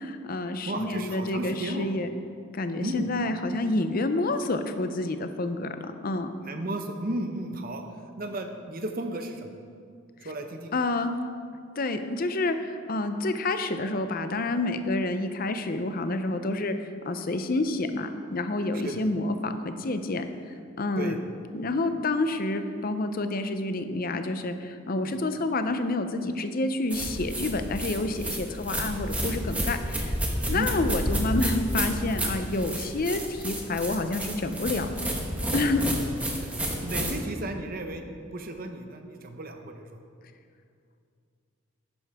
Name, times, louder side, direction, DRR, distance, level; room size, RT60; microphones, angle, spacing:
voice 1, 0.0-2.1 2.5-6.3 10.7-11.1 11.8-16.7 17.0-20.2 20.8-21.2 21.5-30.2 30.5-34.9 35.5-35.8, left 2 dB, 45° left, 8 dB, 0.6 m, -28 dB
voice 2, 0.6-1.9 2.8-3.1 6.5-7.8 8.2-9.5 10.2-10.7 18.8-19.0 21.0-21.2 25.0-25.2 28.8-28.9 30.5-30.7 36.3-36.5 36.8-40.0, right 1 dB, 45° right, 5 dB, 0.7 m, -34 dB
sound 1, 26.9-37.1, right 1 dB, 5° right, 1.0 m, -30 dB
11.5 x 9.8 x 3.6 m, 2.3 s
head